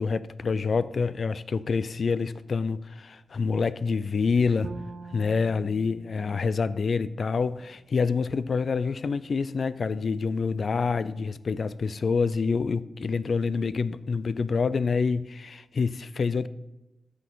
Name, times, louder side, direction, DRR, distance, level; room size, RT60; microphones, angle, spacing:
voice 1, 0.0-4.7 5.1-16.5, left 5 dB, 55° left, 0.4 m, -27 dB
Bowed string instrument, 4.6-7.8, right 4 dB, 70° right, 0.6 m, -44 dB
14.5 x 5.9 x 3.9 m
wide cardioid pair, 95°, 0 cm